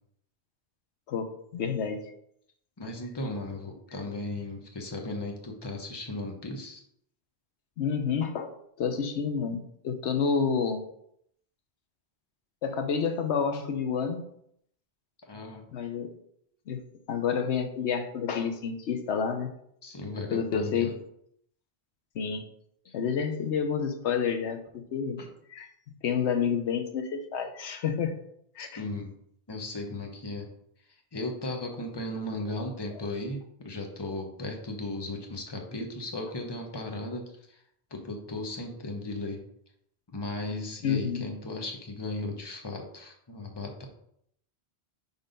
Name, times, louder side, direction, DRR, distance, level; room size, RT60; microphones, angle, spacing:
voice 1, 1.1-2.1 7.8-8.5 8.8-10.8 12.6-14.3 15.7-16.1 16.7-16.8 17.1-19.5 20.3-20.9 22.1-22.4 22.9-25.2 25.5-25.7 26.0-28.2 28.6-28.8 40.8-41.2, left 6 dB, 85° left, 7 dB, 1.0 m, -29 dB
voice 2, 2.8-6.8 15.2-15.7 19.8-20.9 22.8-22.9 25.2-25.3 28.6-29.1 29.5-30.5 31.1-37.6 37.9-39.4 40.1-43.8, left 2 dB, 25° left, 2 dB, 1.0 m, -36 dB
5.6 x 4.0 x 5.1 m, 0.72 s
omnidirectional pair, 1.1 m